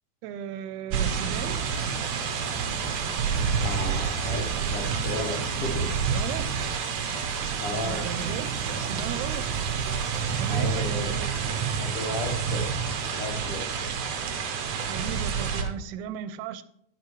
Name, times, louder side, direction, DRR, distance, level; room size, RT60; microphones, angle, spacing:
voice 1, 0.2-1.7 6.1-6.5 7.9-8.5 8.8-9.5 10.4-11.4 14.8-16.6, right 9 dB, 90° right, 13 dB, 2.6 m, -36 dB
sound 1, 0.9-15.6, right 6 dB, 75° right, 1.6 m, -28 dB
sound 2, 1.4-10.8, right 5 dB, 40° right, 1.9 m, -47 dB
voice 2, 3.6-5.9 7.6-8.0 10.5-11.1 11.8-12.7 13.2-13.7, left 2 dB, 75° left, 0 dB, 1.3 m, -34 dB
11.0 x 10.5 x 3.1 m, 0.76 s
omnidirectional pair, 4.5 m